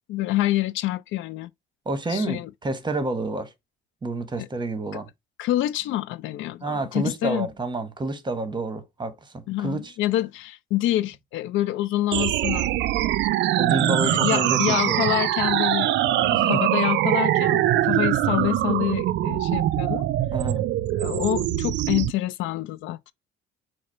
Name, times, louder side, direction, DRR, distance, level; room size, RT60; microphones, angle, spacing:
voice 1, 0.1-1.5 2.1-2.5 4.4-4.5 4.9-5.0 5.4-7.5 9.5-12.7 14.0-15.9 16.4-20.1 21.0-23.1, left 14 dB, 65° left, 0.4 m, -27 dB
voice 2, 1.9-3.5 4.0-5.1 6.6-9.9 13.6-15.1 16.0-16.6 20.3-20.6, right 2 dB, 20° right, 1.0 m, -29 dB
sound 1, 12.1-22.1, right 14 dB, 60° right, 0.4 m, -23 dB
4.7 x 2.0 x 4.3 m
supercardioid pair, 80°, 21 cm